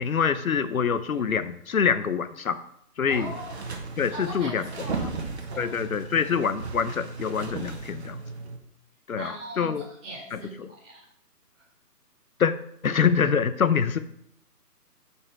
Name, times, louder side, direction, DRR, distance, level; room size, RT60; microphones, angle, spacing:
voice 1, 0.0-2.6 3.0-3.3 4.0-4.6 5.6-8.2 9.1-9.8 10.3-10.7 12.4-12.5 12.8-14.0, left 6 dB, 60° left, 12 dB, 0.8 m, -25 dB
voice 2, 3.0-5.7 9.1-9.7 10.0-11.0, right 1 dB, 5° right, -10 dB, 1.1 m, -40 dB
sound 1, 3.1-8.6, right 4 dB, 40° right, 1.3 m, -36 dB
6.7 x 5.5 x 5.5 m, 0.71 s
hypercardioid pair, 165°, 48 cm